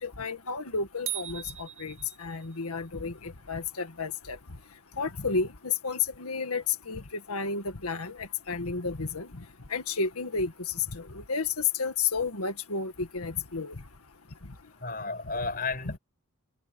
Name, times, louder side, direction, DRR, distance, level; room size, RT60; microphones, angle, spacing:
voice 1, 0.0-4.4 5.0-7.0 7.3-9.3 9.7-10.5 10.8-13.7, left 5 dB, 90° left, 1.8 m, -31 dB
sound 1, 1.1-2.6, right 13 dB, 60° right, 2.0 m, -38 dB
voice 2, 14.7-16.0, left 3 dB, 40° left, 6.0 m, -33 dB
head